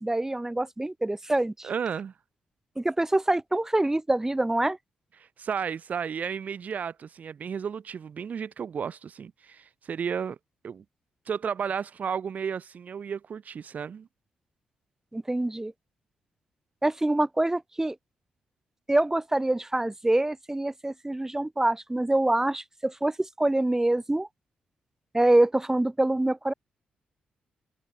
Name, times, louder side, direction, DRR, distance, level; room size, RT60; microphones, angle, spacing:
voice 1, 0.0-1.7 2.8-4.8 15.1-15.7 16.8-18.0 18.9-24.3 25.1-26.5, right 1 dB, 15° right, 7.9 m, -25 dB
voice 2, 1.6-2.1 5.2-10.4 10.6-10.8 11.3-14.1, right 7 dB, 60° right, 5.9 m, -33 dB
cardioid pair, 65°, 3 cm